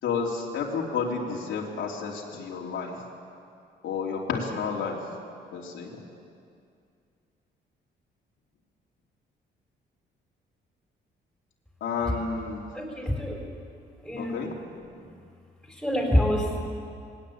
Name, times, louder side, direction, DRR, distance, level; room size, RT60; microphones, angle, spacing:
voice 1, 0.0-3.0 3.8-5.0 5.5-6.0 11.8-12.6 14.2-14.5, left 5 dB, 85° left, -2 dB, 3.2 m, -31 dB
voice 2, 12.7-13.4 14.0-14.4 15.7-16.6, equal, ahead, 0 dB, 4.9 m, -26 dB
20.5 x 18.0 x 8.7 m, 2.4 s
cardioid pair, 130°, 19 cm